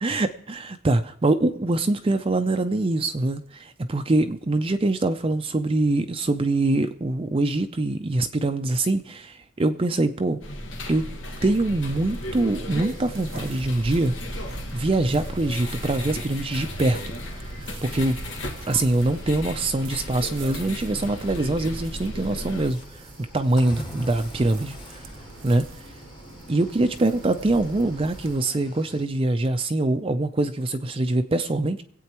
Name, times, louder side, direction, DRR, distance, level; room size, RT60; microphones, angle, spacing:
voice 1, 0.0-10.4 10.9-11.1 11.4-14.1 14.7-17.0 17.4-18.2 18.6-23.0 23.3-25.0 25.4-25.7 26.5-31.8, right 2 dB, 30° right, 7 dB, 0.5 m, -24 dB
sound 1, 10.4-22.7, left 1 dB, 85° left, 1.8 m, -35 dB
sound 2, 11.0-28.4, right 2 dB, 80° right, 0.9 m, -44 dB
Cricket / Waves surf, 12.7-29.1, left 1 dB, 25° left, 1.5 m, -46 dB
25.0 x 8.4 x 3.0 m, 0.67 s
head